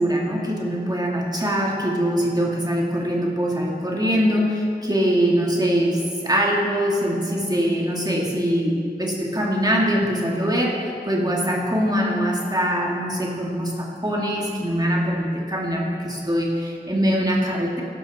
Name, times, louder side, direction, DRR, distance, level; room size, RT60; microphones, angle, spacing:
voice 1, 0.0-17.8, equal, 20° right, -3 dB, 2.5 m, -23 dB
17.0 x 12.5 x 4.3 m, 2.3 s
wide cardioid pair, 45°, 18 cm